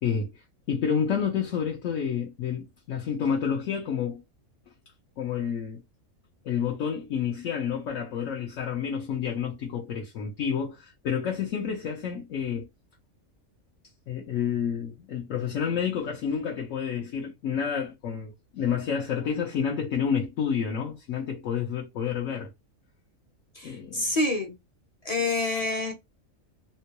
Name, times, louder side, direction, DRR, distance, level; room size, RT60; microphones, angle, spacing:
voice 1, 0.0-4.2 5.2-5.8 6.4-12.7 14.1-22.5 23.6-24.1, left 7 dB, 75° left, 1.1 m, -29 dB
voice 2, 23.6-24.6 25.0-25.9, left 2 dB, 35° left, 0.6 m, -27 dB
3.7 x 2.2 x 2.9 m
omnidirectional pair, 1.4 m